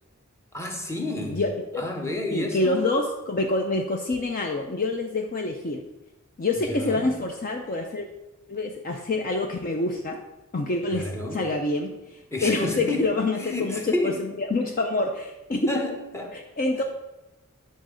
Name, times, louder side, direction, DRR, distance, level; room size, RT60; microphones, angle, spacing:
voice 1, 0.5-1.4 1.8-2.8 6.7-7.1 10.9-11.4 12.3-13.1 13.4-14.2 15.7-16.4 16.8-16.9, left 2 dB, 10° left, 2 dB, 1.1 m, -30 dB
voice 2, 1.2-1.8 2.3-5.8 6.4-8.1 8.5-10.2 10.5-15.8 16.3-16.8, left 2 dB, 40° left, 3 dB, 0.6 m, -27 dB
9.7 x 4.0 x 6.2 m, 1.0 s
head